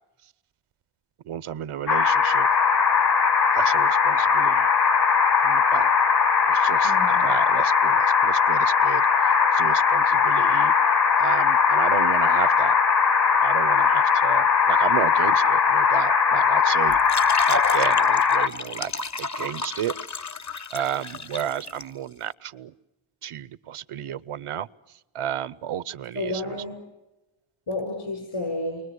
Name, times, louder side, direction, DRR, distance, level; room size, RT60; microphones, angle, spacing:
voice 1, 1.3-2.5 3.5-4.7 5.4-5.9 6.5-9.0 9.5-10.7 11.2-12.7 13.4-17.0 17.5-18.9 19.2-19.9 20.7-22.7 23.2-24.7 25.1-26.6, right 10 dB, 90° right, 18 dB, 0.8 m, -32 dB
sound 1, 1.9-18.5, left 6 dB, 50° left, 1.5 m, -20 dB
Wind instrument woodwind instrument, 2.0-17.0, left 6 dB, 85° left, 4.7 m, -44 dB
voice 2, 6.8-7.2 26.2-26.8 27.7-28.8, left 2 dB, 70° left, 2 dB, 7.0 m, -30 dB
sound 2, 16.9-21.8, left 4 dB, 35° left, 0.8 m, -32 dB
29.0 x 23.0 x 8.0 m, 1.0 s
cardioid pair, 65°, 50 cm